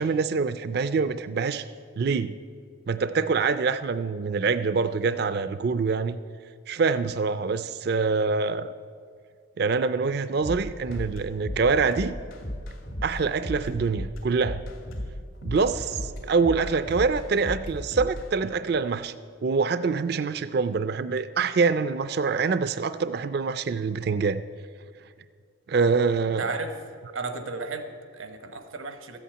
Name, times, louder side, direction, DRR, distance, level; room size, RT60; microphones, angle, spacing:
voice 1, 0.0-1.6 2.0-2.3 2.9-6.2 6.7-8.7 9.6-12.1 13.0-14.6 15.4-19.1 19.4-24.4 25.7-26.4, right 4 dB, 50° right, 13 dB, 0.4 m, -25 dB
sound 1, 10.4-18.3, left 1 dB, 85° left, 2.3 m, -35 dB
voice 2, 26.4-26.7 27.1-29.2, right 3 dB, 85° right, 8 dB, 1.1 m, -34 dB
14.0 x 8.5 x 8.6 m, 2.1 s
head